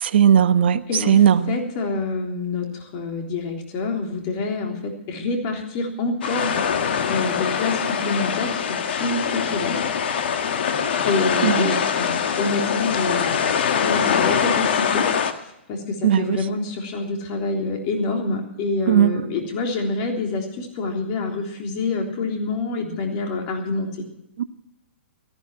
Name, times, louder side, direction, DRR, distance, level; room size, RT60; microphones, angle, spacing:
voice 1, 0.0-0.8 1.1-1.5 11.4-11.7 16.0-16.4 18.9-19.1 24.4-24.5, right 9 dB, 60° right, 14 dB, 1.0 m, -16 dB
voice 2, 0.9-6.6 7.1-9.8 11.1-13.5 13.8-15.1 15.7-23.9, left 3 dB, 40° left, 2 dB, 3.5 m, -27 dB
sound 1, 6.2-15.3, left 7 dB, 60° left, 1.6 m, -23 dB
18.0 x 14.0 x 4.5 m, 0.85 s
figure-of-eight pair, 120°, 6 cm